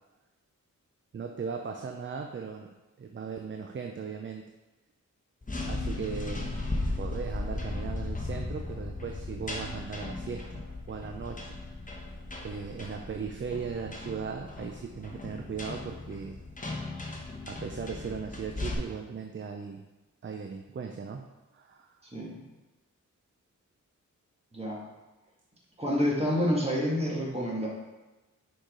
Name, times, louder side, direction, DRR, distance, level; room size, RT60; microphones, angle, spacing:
voice 1, 1.1-2.7 3.0-4.5 5.7-6.5 7.0-11.6 12.4-16.4 17.5-19.8 20.2-22.0, right 6 dB, 40° right, 4 dB, 0.5 m, -38 dB
sound 1, 5.4-18.7, left 2 dB, 25° left, 1.0 m, -37 dB
voice 2, 22.0-22.4 24.5-24.8 25.8-27.7, equal, 20° right, -4 dB, 1.9 m, -28 dB
6.4 x 4.8 x 3.8 m, 1.1 s
wide cardioid pair, 95°, 31 cm